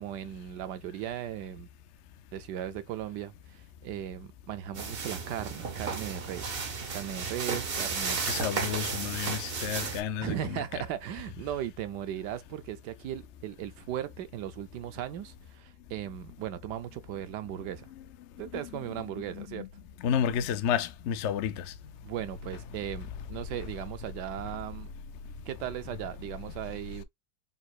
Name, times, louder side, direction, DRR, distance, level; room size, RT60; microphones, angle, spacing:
voice 1, 0.0-1.7 2.3-6.6 6.9-8.2 10.2-17.9 18.4-19.7 22.0-24.9 25.5-27.0, right 11 dB, 75° right, 1.3 m, -37 dB
sound 1, 4.8-10.0, right 5 dB, 45° right, 0.9 m, -33 dB
voice 2, 8.3-10.8 18.5-18.9 19.2-19.7 20.0-21.7, left 8 dB, 75° left, 0.6 m, -31 dB
4.3 x 4.0 x 2.3 m
omnidirectional pair, 1.8 m